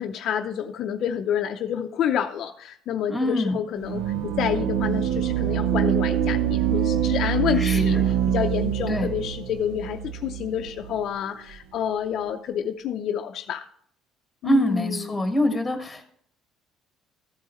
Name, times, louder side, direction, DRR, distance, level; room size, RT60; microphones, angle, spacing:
voice 1, 0.0-13.7 14.4-15.6, left 9 dB, 45° left, 5 dB, 0.6 m, -29 dB
voice 2, 3.1-3.6 7.5-8.1 8.9-9.1 14.4-16.0, equal, 5° left, 5 dB, 1.4 m, -25 dB
sound 1, 3.8-11.0, right 9 dB, 90° right, 0.6 m, -25 dB
14.5 x 8.4 x 3.1 m, 0.64 s
cardioid pair, 170°, 0 cm